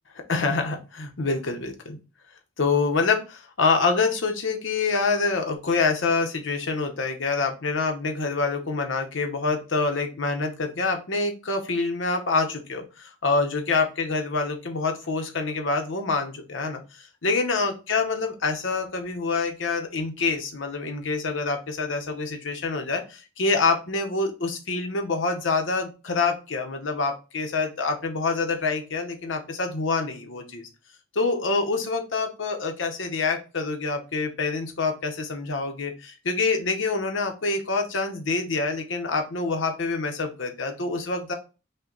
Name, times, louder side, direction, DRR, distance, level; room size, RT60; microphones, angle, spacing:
voice 1, 0.3-2.0 2.6-30.6 31.1-41.3, left 4 dB, 70° left, 4 dB, 0.9 m, -26 dB
5.5 x 2.3 x 3.8 m, 0.31 s
head